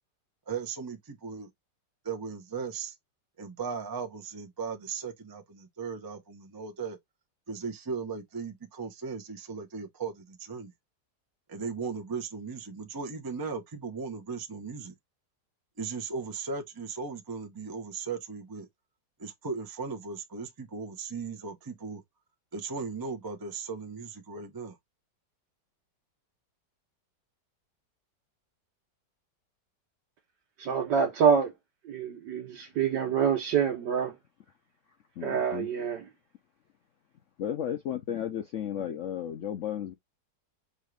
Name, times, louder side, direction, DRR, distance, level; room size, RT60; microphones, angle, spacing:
voice 1, 0.5-1.5 2.0-2.9 3.4-7.0 7.5-10.7 11.5-14.9 15.8-18.7 19.2-22.0 22.5-24.8, right 5 dB, 25° right, 0.5 m, -37 dB
voice 2, 30.6-31.5 31.8-34.2 35.2-36.0, right 7 dB, 75° right, 1.4 m, -26 dB
voice 3, 35.2-35.7 37.4-39.9, left 10 dB, 75° left, 0.7 m, -34 dB
5.5 x 2.4 x 3.2 m
omnidirectional pair, 1.9 m